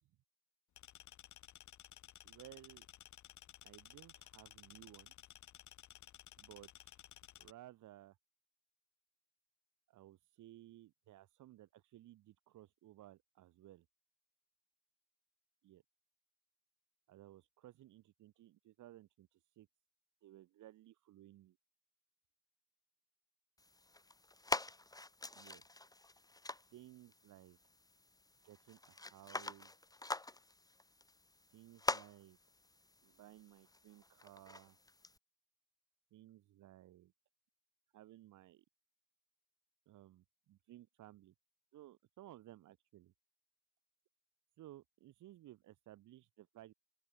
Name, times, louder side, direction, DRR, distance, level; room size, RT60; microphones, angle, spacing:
sound 1, 0.8-7.5, left 11 dB, 70° left, 5.4 m, -57 dB
voice 1, 2.2-2.9 3.6-5.3 6.4-7.1 7.4-8.2 9.9-13.9 15.6-15.8 17.1-19.7 20.2-21.6 25.4-25.6 26.7-27.6 28.4-29.7 31.5-32.4 33.0-34.8 36.1-37.1 37.9-38.6 39.9-41.3 41.7-43.1 44.6-46.7, right 14 dB, 80° right, 1.8 m, -58 dB
sound 2, 23.6-35.2, left 2 dB, 10° left, 1.5 m, -45 dB
open air
cardioid pair, 90°, 30 cm